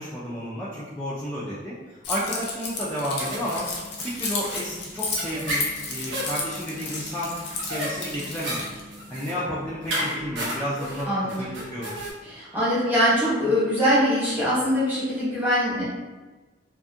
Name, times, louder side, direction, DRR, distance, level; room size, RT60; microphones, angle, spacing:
voice 1, 0.0-3.7 4.0-7.3 7.6-8.8 9.1-11.1 11.4-11.9, equal, 10° left, -10 dB, 0.4 m, -31 dB
Keys jangling, 2.0-8.8, left 4 dB, 65° left, 0.5 m, -33 dB
sound 1, 3.2-12.1, equal, 80° right, 0.6 m, -34 dB
voice 2, 12.2-15.8, equal, 10° right, -9 dB, 1.1 m, -22 dB
2.5 x 2.4 x 2.5 m, 1.2 s
head